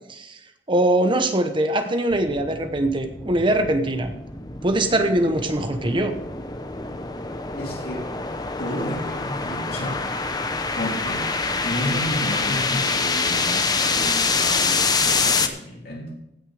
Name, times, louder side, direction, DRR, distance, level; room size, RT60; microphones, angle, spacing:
voice 1, 0.7-4.1 4.6-6.1, right 1 dB, 30° right, 0.9 m, -22 dB
sound 1, 2.1-15.5, left 4 dB, 20° left, 0.8 m, -26 dB
voice 2, 7.6-8.2 8.6-10.1 10.7-11.3 11.6-16.3, left 1 dB, 60° left, 3.1 m, -31 dB
16.0 x 6.5 x 4.9 m
head